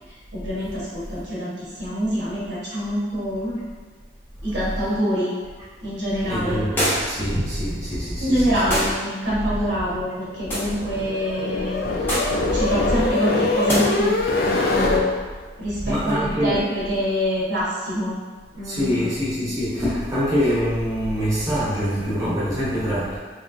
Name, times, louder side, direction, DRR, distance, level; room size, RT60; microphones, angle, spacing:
voice 1, 0.1-3.6 4.4-5.3 5.8-6.6 8.2-11.8 12.5-14.2 14.4-15.1 15.6-18.2 18.5-19.1, equal, 90° right, -8 dB, 1.2 m, -25 dB
voice 2, 6.2-6.8 7.1-8.4 15.8-16.6 18.6-23.2, equal, 20° right, -10 dB, 0.9 m, -24 dB
sound 1, 6.8-7.2 8.7-9.0 10.5-10.7 12.1-12.4 13.7-13.8, equal, 10° left, 0.7 m, -24 dB
sound 2, 10.3-15.0, left 2 dB, 55° left, 0.4 m, -23 dB
3.1 x 3.0 x 2.6 m, 1.4 s
head